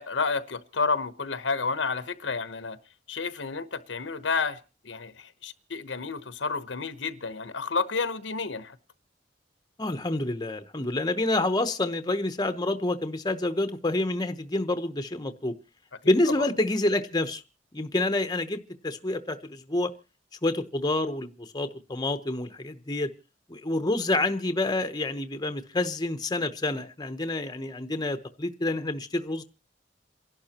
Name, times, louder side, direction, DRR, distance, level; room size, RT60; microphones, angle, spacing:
voice 1, 0.0-2.8 3.1-8.8 16.4-16.5, left 4 dB, 85° left, 1.0 m, -30 dB
voice 2, 9.8-15.5 16.0-17.4 17.7-19.9 20.4-23.1 23.5-29.4, left 2 dB, 20° left, 0.9 m, -28 dB
28.5 x 11.5 x 2.9 m
head